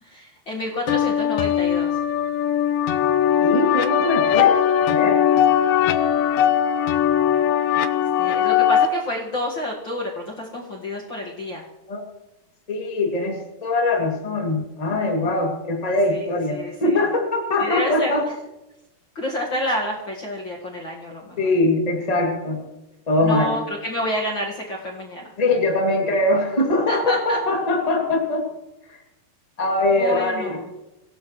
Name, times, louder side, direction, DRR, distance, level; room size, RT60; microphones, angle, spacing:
voice 1, 0.0-2.0 8.2-11.6 16.1-17.0 17.6-18.1 19.1-21.5 23.2-25.3 26.9-27.4 30.0-30.7, left 1 dB, 45° left, -3 dB, 1.6 m, -29 dB
sound 1, 0.9-8.9, left 9 dB, 80° left, 2.0 m, -19 dB
voice 2, 3.4-5.2 11.9-12.0 12.7-18.2 21.4-22.7 23.1-23.5 25.4-28.5 28.9-29.0 29.6-30.6, left 2 dB, 15° left, 0 dB, 1.6 m, -22 dB
26.0 x 17.0 x 3.2 m, 0.99 s
omnidirectional pair, 4.7 m